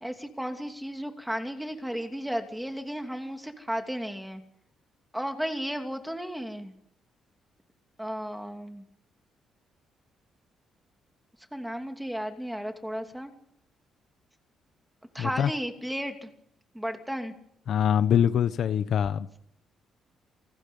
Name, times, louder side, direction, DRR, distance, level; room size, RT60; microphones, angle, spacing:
voice 1, 0.0-4.4 5.1-6.7 8.0-8.8 11.5-13.3 15.1-16.3 16.7-17.3, equal, 5° right, 2.7 m, -34 dB
voice 2, 15.2-15.5 17.7-19.4, left 9 dB, 65° left, 0.8 m, -24 dB
28.0 x 19.5 x 5.5 m
cardioid pair, 115°, 0 cm